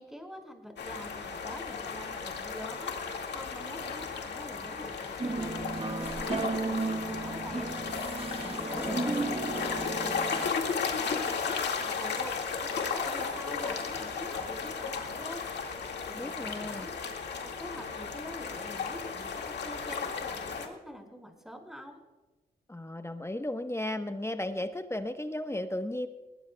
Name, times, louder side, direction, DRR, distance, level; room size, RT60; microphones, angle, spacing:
voice 1, 0.0-7.7 8.4-15.4 16.1-22.0, equal, ahead, 3 dB, 5.2 m, -46 dB
sound 1, 0.8-20.7, left 5 dB, 65° left, 2.1 m, -35 dB
sound 2, 5.2-10.5, right 3 dB, 30° right, 1.2 m, -34 dB
voice 2, 8.4-9.3 16.1-16.9 22.7-26.1, left 1 dB, 15° left, 8 dB, 1.1 m, -35 dB
20.0 x 19.0 x 2.3 m, 1.1 s
supercardioid pair, 40°, 19 cm